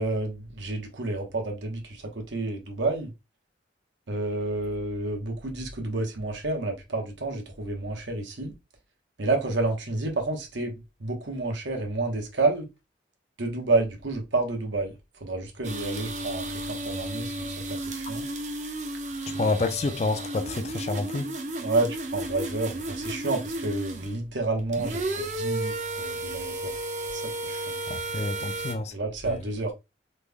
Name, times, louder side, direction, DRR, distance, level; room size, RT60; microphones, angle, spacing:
voice 1, 0.0-3.1 4.1-8.5 9.2-10.7 11.0-12.6 13.4-14.9 15.2-18.2 21.6-26.7 27.1-27.8 28.9-29.7, right 2 dB, 80° right, 0.9 m, -29 dB
sound 1, 15.6-24.2 24.6-28.7, right 2 dB, 40° right, 0.5 m, -33 dB
voice 2, 19.4-21.3 27.9-28.9 29.2-29.4, left 3 dB, 35° left, 0.3 m, -28 dB
3.2 x 2.2 x 3.5 m
head